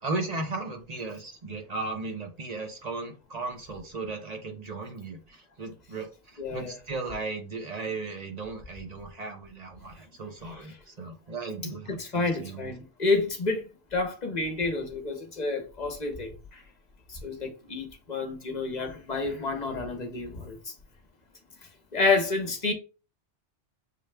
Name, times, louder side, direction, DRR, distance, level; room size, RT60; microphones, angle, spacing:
voice 1, 0.0-12.7, right 3 dB, 40° right, 0.8 m, -36 dB
voice 2, 6.4-6.8 10.4-10.8 12.0-16.6 17.1-20.7 21.9-22.7, left 3 dB, 40° left, 1.0 m, -29 dB
6.7 x 2.3 x 3.2 m
omnidirectional pair, 1.2 m